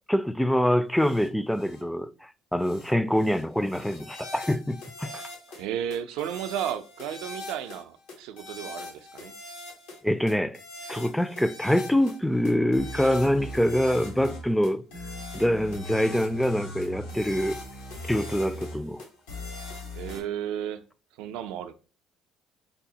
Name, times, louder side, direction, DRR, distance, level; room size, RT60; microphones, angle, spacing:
voice 1, 0.1-5.2 10.0-10.6 10.9-14.8 15.3-17.6 18.0-19.0, equal, 5° left, 0.3 m, -25 dB
sound 1, 1.0-1.3 1.5-1.8 2.6-2.9 3.2-5.6 5.9-7.8 8.1-10.0 10.3-12.2 12.4-20.2, left 2 dB, 90° left, 1.0 m, -40 dB
voice 2, 5.6-9.3 19.9-20.8 21.2-21.7, right 10 dB, 80° right, 0.4 m, -33 dB
5.3 x 2.0 x 2.7 m
supercardioid pair, 75°, 0 cm